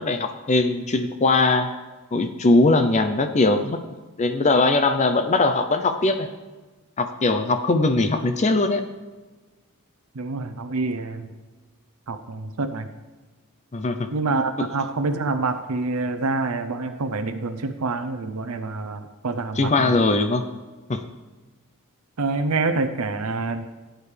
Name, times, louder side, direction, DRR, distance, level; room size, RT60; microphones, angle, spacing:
voice 1, 0.0-1.7 2.1-3.8 4.2-6.3 7.0-8.8 13.7-14.1 14.6-14.7 19.6-20.5 20.9-21.0, left 2 dB, 30° left, 8 dB, 0.5 m, -20 dB
voice 2, 10.1-11.3 12.1-12.9 14.1-20.0 22.2-23.7, right 3 dB, 85° right, 8 dB, 0.7 m, -26 dB
16.5 x 9.0 x 3.3 m, 1.3 s
head